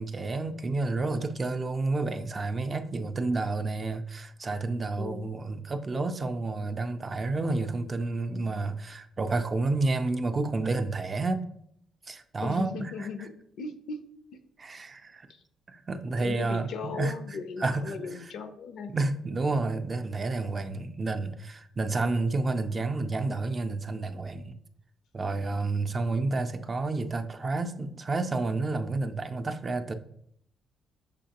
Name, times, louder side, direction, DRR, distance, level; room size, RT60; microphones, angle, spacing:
voice 1, 0.0-11.4 12.1-12.7 14.6-15.3 15.7-17.1 17.6-17.9 18.9-24.5 25.1-29.9, right 3 dB, 35° right, 8 dB, 0.4 m, -30 dB
voice 2, 5.0-5.3 12.4-14.4 15.3-15.4 16.2-19.0, left 4 dB, 75° left, 9 dB, 0.4 m, -38 dB
6.4 x 2.8 x 2.8 m, 0.70 s
cardioid pair, 90°, 0 cm